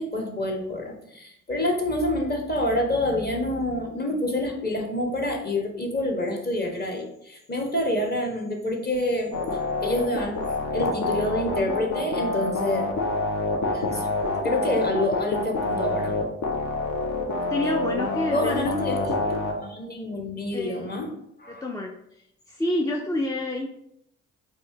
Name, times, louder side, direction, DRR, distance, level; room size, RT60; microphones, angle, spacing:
voice 1, 0.0-9.3 9.8-10.4 10.7-12.8 13.7-14.1 14.4-16.1 17.6-17.8 18.3-21.1 21.4-21.6, left 1 dB, 25° left, 1 dB, 1.2 m, -27 dB
sound 1, 9.3-19.5, left 3 dB, 50° left, 0.9 m, -27 dB
voice 2, 17.5-18.7 19.1-19.3 20.5-20.9 21.5-21.9 22.5-23.7, left 1 dB, 10° left, 1 dB, 0.4 m, -28 dB
4.2 x 2.8 x 3.3 m, 0.75 s
figure-of-eight pair, 40°, 38 cm